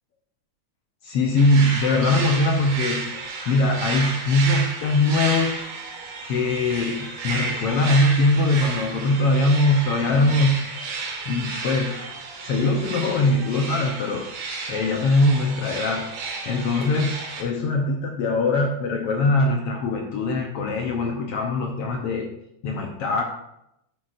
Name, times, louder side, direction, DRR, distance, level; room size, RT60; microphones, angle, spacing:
voice 1, 1.0-3.1 3.5-5.6 6.2-10.6 11.3-11.9 12.4-16.1 16.5-22.3 22.6-23.2, left 2 dB, 75° left, 2 dB, 1.4 m, -21 dB
sound 1, 1.4-17.4, right 4 dB, 85° right, 2.8 m, -32 dB
10.5 x 7.6 x 2.5 m, 0.80 s
omnidirectional pair, 3.6 m